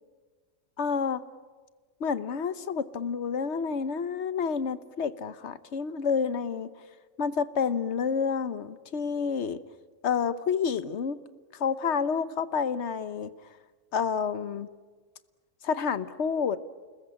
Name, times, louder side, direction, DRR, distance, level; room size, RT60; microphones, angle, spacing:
voice 1, 0.8-1.2 2.0-6.7 7.2-9.6 10.0-11.2 11.5-13.3 13.9-14.7 15.6-16.6, left 6 dB, 60° left, 13 dB, 1.2 m, -29 dB
29.5 x 20.5 x 8.6 m, 1.4 s
omnidirectional pair, 1.3 m